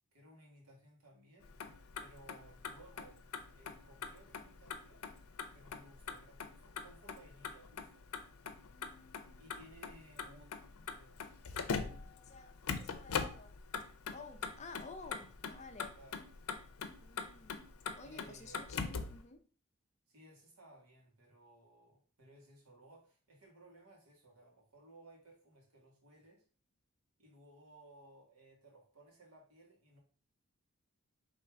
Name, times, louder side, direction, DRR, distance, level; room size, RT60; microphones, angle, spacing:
voice 1, 0.1-1.5 2.0-5.1 5.5-8.1 9.4-10.6 10.9-11.2 11.7-12.1 16.0-16.3 18.0-19.1 20.1-26.4 27.2-30.0, right 1 dB, 85° right, 0 dB, 1.7 m, -60 dB
Motor vehicle (road), 1.4-19.2, left 5 dB, 80° left, 0.6 m, -43 dB
voice 2, 8.7-9.5 12.3-13.5 14.1-16.0 17.0-17.6 18.0-19.4, left 4 dB, 30° left, 7 dB, 0.4 m, -53 dB
3.6 x 3.1 x 4.6 m, 0.42 s
head